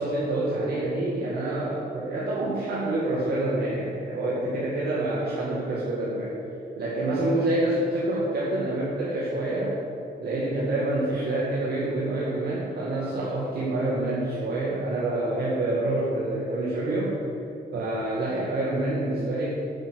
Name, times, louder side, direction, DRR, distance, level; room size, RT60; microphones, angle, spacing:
voice 1, 0.0-6.4 6.8-9.7 10.2-17.2 17.7-19.7, right 1 dB, 70° right, -6 dB, 2.2 m, -27 dB
9.9 x 8.9 x 6.3 m, 2.7 s
cardioid pair, 160°, 17 cm